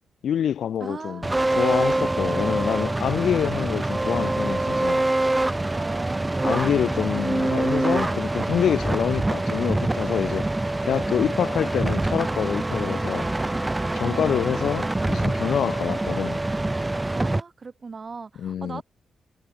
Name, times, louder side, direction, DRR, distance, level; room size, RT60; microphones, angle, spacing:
voice 1, 0.2-1.3 1.5-5.1 6.4-10.5 10.8-13.3 13.9-16.4 18.4-18.8, left 9 dB, 70° left, 1.0 m, -26 dB
voice 2, 0.8-1.6 5.7-6.8 14.0-14.5 17.1-18.8, right 4 dB, 30° right, 3.0 m, -38 dB
sound 1, 1.2-17.4, right 2 dB, 10° right, 1.1 m, -25 dB
wide cardioid pair, 150°, 0 cm